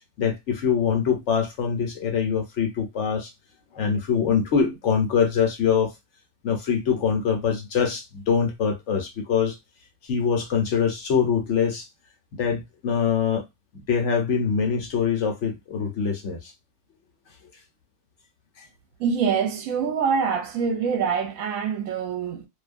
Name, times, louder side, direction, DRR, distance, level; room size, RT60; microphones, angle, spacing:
voice 1, 0.2-3.3 3.7-5.9 6.4-9.6 10.0-11.9 12.3-13.4 13.9-16.5 18.6-18.7, left 6 dB, 60° left, 1.1 m, -24 dB
voice 2, 19.0-22.5, right 6 dB, 80° right, 1.1 m, -25 dB
2.7 x 2.3 x 2.4 m
omnidirectional pair, 1.4 m